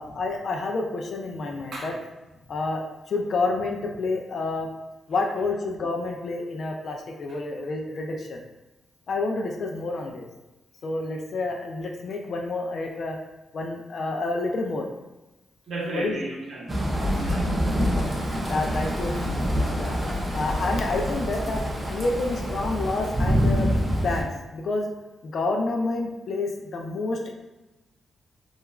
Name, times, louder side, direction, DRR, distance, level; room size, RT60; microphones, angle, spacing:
voice 1, 0.0-1.9 2.5-4.7 5.1-8.4 9.1-10.3 10.8-13.2 13.5-14.9 15.9-16.1 17.8-19.3 19.8-20.0 20.3-21.6 21.9-24.9 25.2-27.3, left 3 dB, 50° left, 1 dB, 0.3 m, -29 dB
voice 2, 15.7-17.8, right 2 dB, 60° right, -3 dB, 0.7 m, -35 dB
sound 1, 16.7-24.2, equal, 20° right, 0.4 m, -26 dB
2.3 x 2.2 x 3.0 m, 1.1 s
wide cardioid pair, 150°, 0 cm